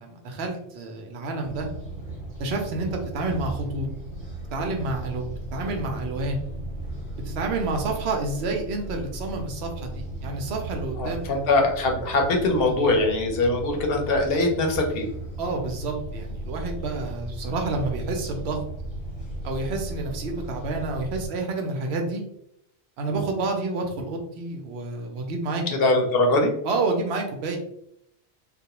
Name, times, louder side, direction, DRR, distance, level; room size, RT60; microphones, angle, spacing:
voice 1, 0.0-1.7 2.4-3.9 4.5-6.4 7.2-11.2 15.4-18.6 19.4-22.2 23.0-25.6 26.6-27.6, right 3 dB, 80° right, 3 dB, 0.8 m, -29 dB
sound 1, 1.4-21.3, right 1 dB, 30° right, 0.9 m, -36 dB
voice 2, 11.0-15.1 25.7-26.5, left 2 dB, 70° left, 2 dB, 0.8 m, -22 dB
2.3 x 2.1 x 2.8 m, 0.74 s
omnidirectional pair, 1.1 m